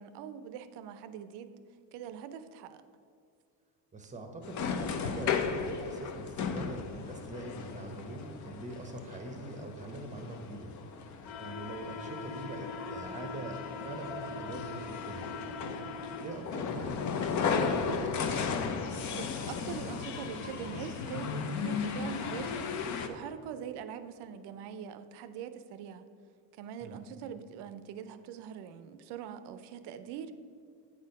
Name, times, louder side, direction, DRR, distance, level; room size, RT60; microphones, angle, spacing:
voice 1, 0.0-1.6 1.9-2.8 19.1-26.1 26.5-30.3, right 8 dB, 65° right, 11 dB, 0.6 m, -43 dB
voice 2, 3.9-10.7 11.4-15.3 16.2-18.5 26.8-27.0, right 2 dB, 15° right, 4 dB, 0.7 m, -43 dB
sound 1, 4.4-23.1, left 5 dB, 40° left, 0.6 m, -35 dB
8.4 x 4.2 x 5.3 m, 2.2 s
cardioid pair, 130°, 44 cm